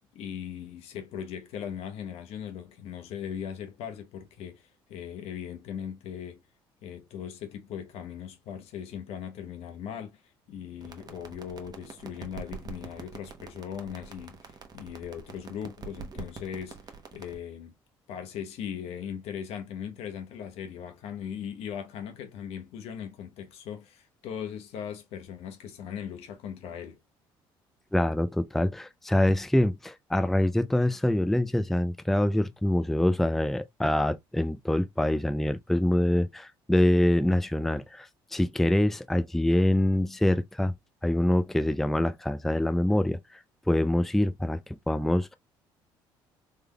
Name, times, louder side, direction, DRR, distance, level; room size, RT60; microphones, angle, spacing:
voice 1, 0.1-6.4 6.8-10.2 10.5-16.8 17.1-17.7 18.1-27.0, left 8 dB, 75° left, 0.9 m, -39 dB
sound 1, 10.8-17.4, right 5 dB, 40° right, 1.0 m, -45 dB
voice 2, 27.9-40.7 41.0-43.4 43.7-45.3, left 1 dB, 5° left, 0.4 m, -25 dB
3.4 x 3.3 x 2.2 m
supercardioid pair, 70°, 11 cm